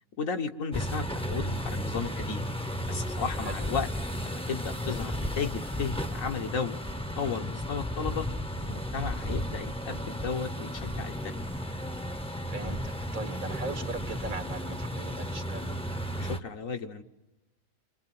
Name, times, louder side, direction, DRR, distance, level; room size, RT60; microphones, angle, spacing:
voice 1, 0.2-2.4 2.9-3.9 4.2-6.8 7.2-8.3 8.6-11.4 16.2-17.0, left 5 dB, 75° left, 5 dB, 1.7 m, -34 dB
sound 1, 0.7-16.4, equal, 5° left, 0.6 m, -34 dB
voice 2, 12.5-15.8, right 3 dB, 85° right, 5 dB, 2.6 m, -39 dB
28.5 x 26.0 x 7.7 m, 1.1 s
omnidirectional pair, 1.4 m